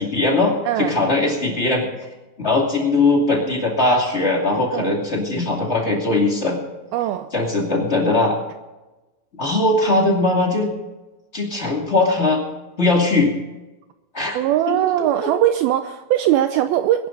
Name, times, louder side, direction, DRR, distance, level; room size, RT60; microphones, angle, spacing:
voice 1, 0.0-1.8 2.4-6.6 7.3-8.4 9.4-10.7 11.3-12.4 12.8-13.3 14.1-14.4 14.7-15.3, left 2 dB, 25° left, 0 dB, 1.6 m, -20 dB
voice 2, 0.7-1.0 4.7-5.0 6.9-7.3 14.3-17.1, right 12 dB, 90° right, 9 dB, 2.1 m, -20 dB
22.5 x 11.0 x 3.9 m, 1.1 s
omnidirectional pair, 4.9 m